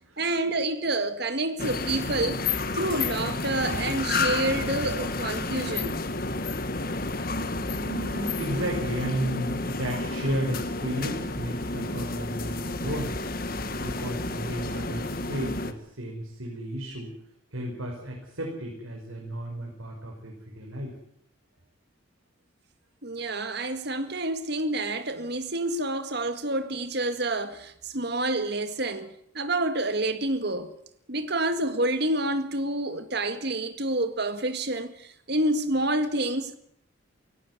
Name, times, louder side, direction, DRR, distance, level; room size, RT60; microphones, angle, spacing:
voice 1, 0.2-2.4 2.7-6.1 23.0-30.7 31.1-36.6, right 2 dB, 55° right, 1.9 m, -28 dB
sound 1, 1.6-15.7, left 3 dB, 45° left, 1.5 m, -30 dB
voice 2, 7.3-13.2 13.8-17.1 17.5-20.9, equal, 90° right, 5.5 m, -33 dB
18.0 x 17.0 x 9.7 m
head